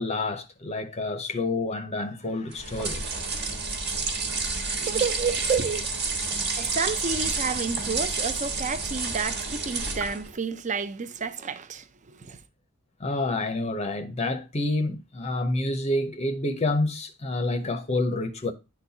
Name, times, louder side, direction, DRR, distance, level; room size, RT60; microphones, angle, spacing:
voice 1, 0.0-3.3 13.0-18.5, left 2 dB, 30° left, 0.6 m, -28 dB
sound 1, 2.5-10.3, right 4 dB, 50° right, 1.4 m, -30 dB
voice 2, 4.8-5.9 6.6-12.4, right 5 dB, 35° right, 0.5 m, -30 dB
10.5 x 4.0 x 2.7 m
head